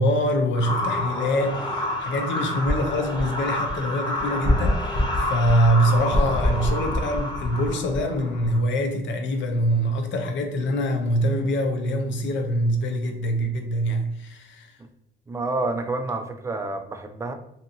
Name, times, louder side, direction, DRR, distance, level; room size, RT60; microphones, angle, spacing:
voice 1, 0.0-14.7, equal, 70° left, 5 dB, 0.6 m, -24 dB
sound 1, 0.5-8.6, left 1 dB, 20° left, 0.6 m, -26 dB
voice 2, 15.3-17.3, right 2 dB, 15° right, 6 dB, 0.3 m, -28 dB
2.7 x 2.4 x 2.6 m, 0.78 s
cardioid pair, 90°, 20 cm